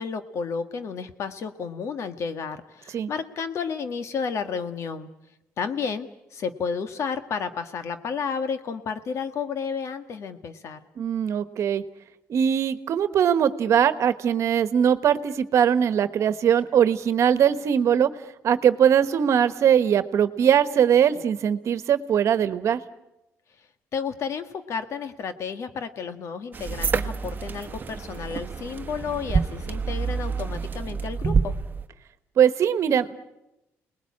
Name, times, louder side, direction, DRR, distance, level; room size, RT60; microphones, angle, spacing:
voice 1, 0.0-5.1 5.6-10.8 23.9-31.5, left 6 dB, 60° left, 9 dB, 1.7 m, -32 dB
voice 2, 11.0-11.8 12.3-18.1 18.4-22.8 32.4-33.2, right 8 dB, 60° right, 12 dB, 1.3 m, -21 dB
sound 1, 26.5-31.9, right 5 dB, 35° right, 1.1 m, -28 dB
29.5 x 20.0 x 8.7 m, 0.94 s
cardioid pair, 105°, 6 cm